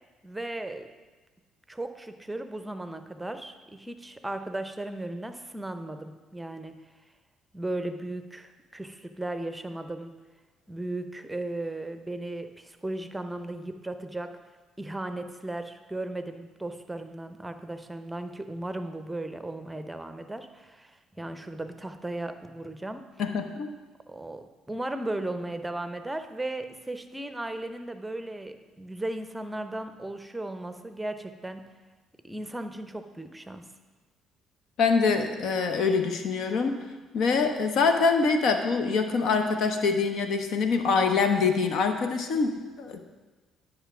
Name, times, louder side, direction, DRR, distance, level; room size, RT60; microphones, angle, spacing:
voice 1, 0.2-0.9 1.7-6.8 7.5-10.1 10.7-14.4 14.8-23.1 24.1-31.7 32.2-33.7, right 1 dB, 10° right, 9 dB, 0.7 m, -36 dB
voice 2, 23.2-23.7 34.8-36.8 37.1-43.0, left 4 dB, 60° left, 6 dB, 0.9 m, -25 dB
11.5 x 5.4 x 6.1 m, 1.3 s
figure-of-eight pair, 50°, 0 cm